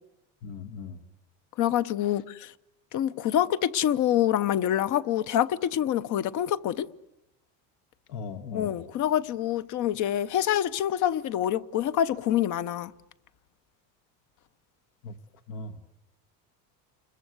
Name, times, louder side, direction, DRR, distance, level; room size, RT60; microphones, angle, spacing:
voice 1, 0.4-1.0 2.1-2.2 8.1-8.8 15.0-15.1 15.5-15.8, left 4 dB, 70° left, 1.7 m, -38 dB
voice 2, 1.6-2.5 2.9-6.9 8.5-12.9, left 11 dB, 50° left, 0.9 m, -26 dB
29.0 x 21.5 x 8.0 m
cardioid pair, 135°, 39 cm